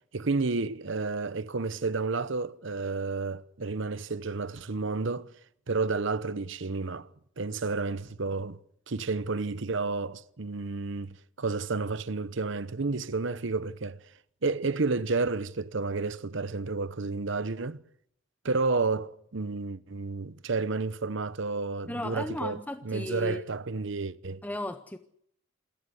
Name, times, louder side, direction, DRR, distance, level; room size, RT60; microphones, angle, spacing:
voice 1, 0.1-5.3 5.7-7.1 7.4-8.6 8.9-14.0 14.4-17.8 18.4-22.6 22.8-24.4, right 3 dB, 65° right, 0.9 m, -31 dB
voice 2, 21.9-23.4 24.4-25.0, left 1 dB, 10° left, 0.8 m, -35 dB
27.5 x 14.0 x 8.0 m
head